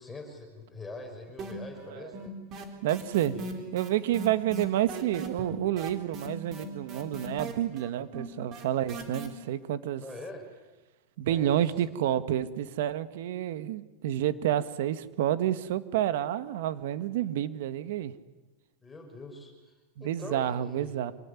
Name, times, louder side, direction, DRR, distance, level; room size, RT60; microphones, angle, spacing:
voice 1, 0.0-2.3 3.3-3.8 10.0-10.5 11.2-11.6 18.8-19.7 20.0-20.9, left 2 dB, 10° left, 2 dB, 5.8 m, -43 dB
sound 1, 1.4-9.3, right 2 dB, 30° right, 4.0 m, -39 dB
voice 2, 1.9-2.2 2.8-3.3 3.7-10.0 11.2-18.1 20.0-21.1, right 12 dB, 65° right, 13 dB, 1.7 m, -29 dB
26.5 x 19.5 x 9.9 m, 1.1 s
supercardioid pair, 155°, 0 cm